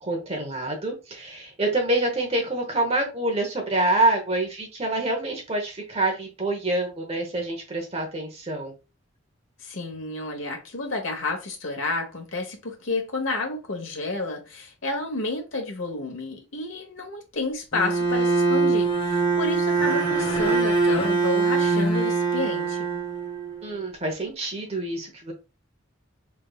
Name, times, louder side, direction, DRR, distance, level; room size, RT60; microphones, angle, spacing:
voice 1, 0.0-8.7 23.6-25.3, right 2 dB, 30° right, 1.0 m, -26 dB
voice 2, 9.6-22.9, left 2 dB, 85° left, 1.0 m, -30 dB
Bowed string instrument, 17.7-23.7, right 4 dB, 25° left, 0.8 m, -23 dB
3.4 x 3.2 x 2.3 m
head